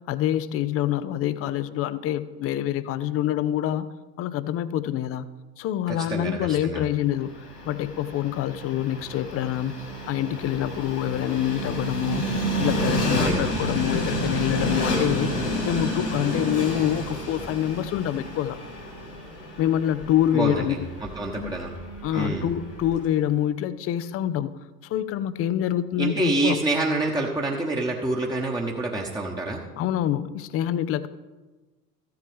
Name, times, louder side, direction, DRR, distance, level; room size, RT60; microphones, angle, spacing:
voice 1, 0.0-3.9 4.2-5.3 5.6-7.3 7.6-9.7 10.1-12.2 12.6-15.3 15.6-18.6 19.6-20.9 21.4-21.6 22.0-24.5 24.8-26.6 29.8-31.1, left 11 dB, 30° left, 15 dB, 0.5 m, -26 dB
voice 2, 5.9-6.9 13.1-13.5 20.3-21.7 22.1-22.5 26.0-29.6, right 2 dB, 10° right, -1 dB, 1.1 m, -27 dB
Train, 7.0-23.1, equal, 80° left, 3.3 m, -30 dB
14.5 x 7.8 x 3.5 m, 1.2 s
figure-of-eight pair, 60°, 46 cm